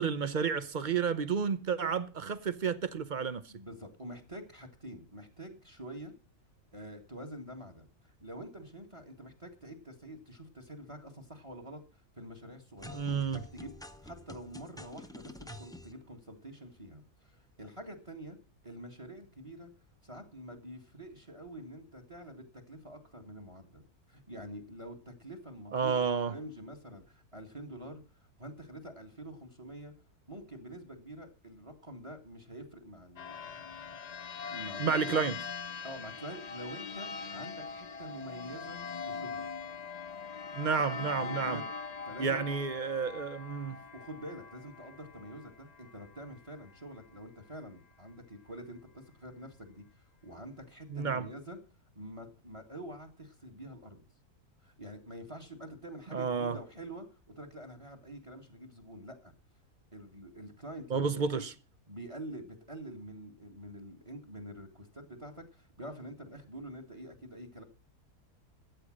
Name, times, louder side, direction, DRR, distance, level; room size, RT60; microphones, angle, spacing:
voice 1, 0.0-3.4 12.9-13.4 25.7-26.3 34.8-35.4 40.5-41.6 42.2-43.8 50.9-51.3 56.1-56.6 60.9-61.5, right 6 dB, 50° right, 0.6 m, -31 dB
voice 2, 3.5-6.1 6.7-11.8 12.1-18.4 18.6-19.7 20.0-28.0 28.4-29.9 30.3-34.0 34.5-35.2 35.8-38.8 39.0-39.5 41.1-41.7 42.1-42.7 43.9-49.9 50.2-51.6 52.0-54.0 54.6-57.1 57.4-59.3 59.9-61.1 61.3-61.5 61.9-67.6, right 1 dB, 20° right, 1.8 m, -46 dB
sound 1, 12.8-15.9, left 1 dB, 5° left, 0.5 m, -48 dB
sound 2, 33.2-46.4, left 5 dB, 60° left, 0.4 m, -42 dB
13.5 x 8.5 x 6.4 m
omnidirectional pair, 1.6 m